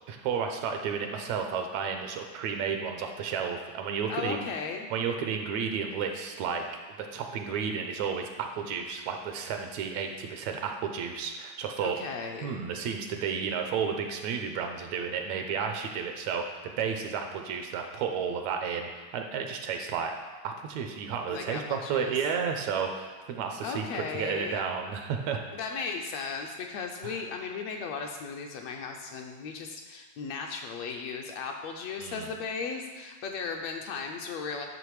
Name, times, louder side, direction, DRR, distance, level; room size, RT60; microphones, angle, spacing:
voice 1, 0.1-4.4 4.9-6.7 7.0-12.0 12.4-20.1 20.4-25.4 27.0-27.2 32.0-32.3, right 6 dB, 80° right, 4 dB, 1.9 m, -32 dB
voice 2, 4.1-4.9 11.8-12.6 21.3-22.1 23.6-24.6 25.5-34.7, left 5 dB, 75° left, 2 dB, 1.7 m, -36 dB
10.5 x 6.4 x 4.8 m, 1.4 s
omnidirectional pair, 3.4 m